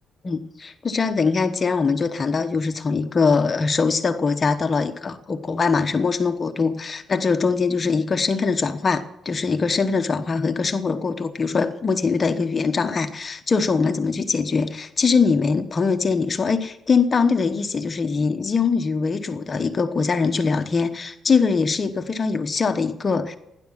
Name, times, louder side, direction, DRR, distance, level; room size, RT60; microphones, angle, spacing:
voice 1, 0.2-23.4, left 4 dB, 35° left, 8 dB, 1.1 m, -22 dB
16.5 x 10.5 x 7.4 m, 0.84 s
cardioid pair, 90°, 0 cm